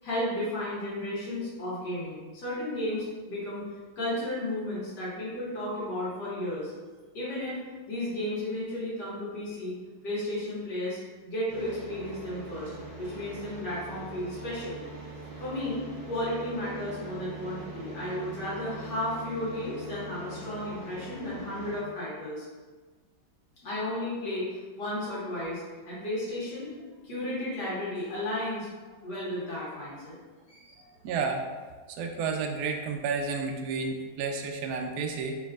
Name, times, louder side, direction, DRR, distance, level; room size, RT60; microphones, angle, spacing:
voice 1, 0.0-3.6 4.0-6.7 7.1-7.6 7.9-9.8 10.0-11.0 11.2-12.7 13.0-14.8 15.4-22.5 23.6-26.7 27.0-30.1 30.5-30.9, left 1 dB, 60° left, -8 dB, 2.1 m, -33 dB
sound 1, 11.5-21.8, right 2 dB, 45° right, 1.8 m, -42 dB
voice 2, 31.0-31.5 31.9-35.4, right 4 dB, 75° right, 3 dB, 0.9 m, -31 dB
4.3 x 4.1 x 2.4 m, 1.4 s
omnidirectional pair, 2.2 m